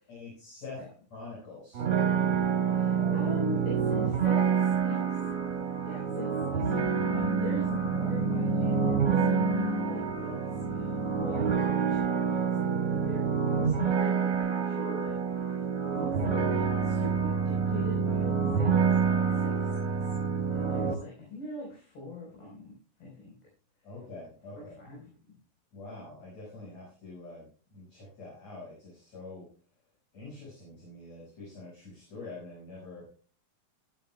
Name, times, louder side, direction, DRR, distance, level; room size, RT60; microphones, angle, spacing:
voice 1, 0.1-0.8 1.1-1.8 3.0-3.2 23.8-24.7 25.7-27.4 27.7-29.5 30.1-33.0, left 3 dB, 40° left, -5 dB, 6.5 m, -45 dB
sound 1, 1.7-20.9, right 6 dB, 45° right, 2.0 m, -27 dB
voice 2, 2.7-5.3 5.8-15.4 15.9-20.1 20.5-23.3 24.5-25.1, left 1 dB, 75° left, -3 dB, 6.3 m, -42 dB
14.5 x 12.0 x 2.3 m, 0.38 s
omnidirectional pair, 4.5 m